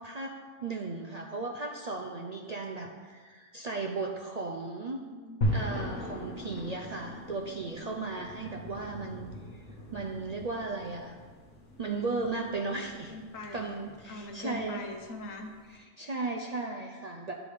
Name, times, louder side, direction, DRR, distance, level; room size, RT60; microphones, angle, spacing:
voice 1, 0.0-5.0 5.5-11.2 11.8-13.1 13.5-14.9 15.7-17.3, right 3 dB, 55° right, 1 dB, 0.4 m, -36 dB
voice 2, 5.0-5.4 13.1-13.7 14.1-15.5, left 2 dB, 90° left, 3 dB, 1.3 m, -41 dB
sound 1, 5.4-15.7, equal, 70° left, 1.5 m, -39 dB
10.5 x 3.7 x 4.9 m, 1.5 s
omnidirectional pair, 1.3 m